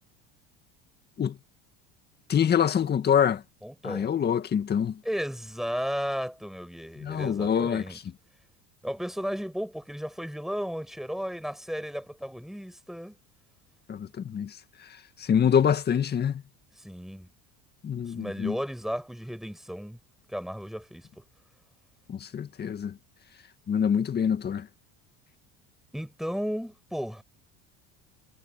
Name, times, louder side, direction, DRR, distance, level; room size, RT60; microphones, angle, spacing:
voice 1, 2.3-3.4 3.8-5.0 7.0-7.8 13.9-14.6 15.2-16.4 17.8-18.6 22.1-22.9 23.7-24.7, left 8 dB, 30° left, 2.0 m, -25 dB
voice 2, 3.6-4.1 5.0-8.0 8.8-13.2 16.8-17.3 18.0-20.0 20.3-21.2 25.9-27.2, equal, ahead, 7.5 m, -34 dB
supercardioid pair, 120°, 31 cm